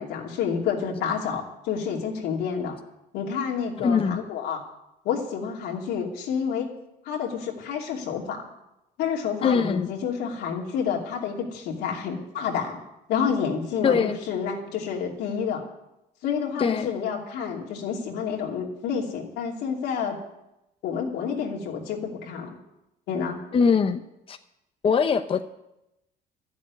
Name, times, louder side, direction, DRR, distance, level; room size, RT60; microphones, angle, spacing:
voice 1, 0.0-2.7 3.1-4.6 5.0-6.7 7.0-8.5 9.0-12.8 13.1-15.6 16.2-20.2 20.8-22.6 23.1-23.4, left 7 dB, 85° left, 0 dB, 2.7 m, -29 dB
voice 2, 3.8-4.2 9.4-9.9 13.8-14.2 16.6-16.9 23.5-24.0 24.3-24.4 24.8-25.4, left 6 dB, 35° left, 8 dB, 0.7 m, -22 dB
13.0 x 7.3 x 9.5 m, 0.89 s
cardioid pair, 110°, 17 cm